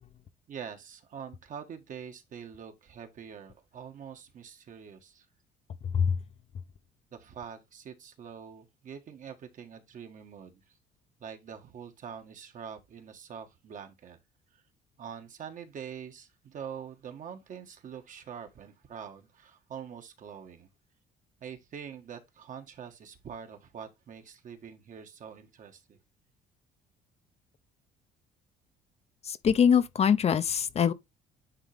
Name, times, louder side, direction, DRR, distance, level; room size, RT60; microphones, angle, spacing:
voice 1, 0.5-5.2 7.1-10.6 11.2-14.2 14.5-14.6 15.0-20.7 21.4-26.0, right 7 dB, 50° right, 1.6 m, -44 dB
voice 2, 29.2-30.9, left 7 dB, 40° left, 0.7 m, -23 dB
9.7 x 3.8 x 3.5 m
cardioid pair, 110°, 17 cm